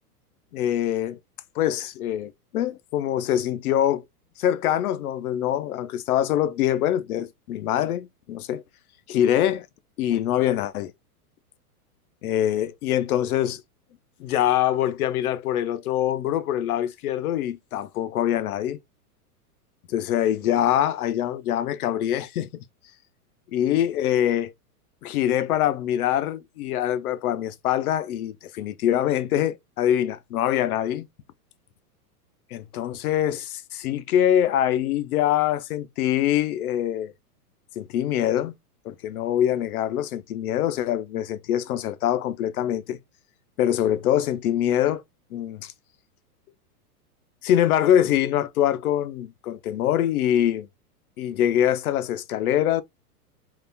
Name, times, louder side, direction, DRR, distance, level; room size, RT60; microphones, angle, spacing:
voice 1, 0.5-1.2 1.6-4.0 4.4-8.6 9.1-9.7 10.0-10.9 12.2-13.6 14.2-18.8 19.9-22.6 23.5-24.5 25.0-31.1 32.5-37.1 37.8-38.5 38.8-43.0 43.6-45.0 45.3-45.7 47.4-50.7 51.2-52.8, left 11 dB, 65° left, 0.7 m, -24 dB
4.0 x 2.4 x 2.7 m
hypercardioid pair, 130°, 46 cm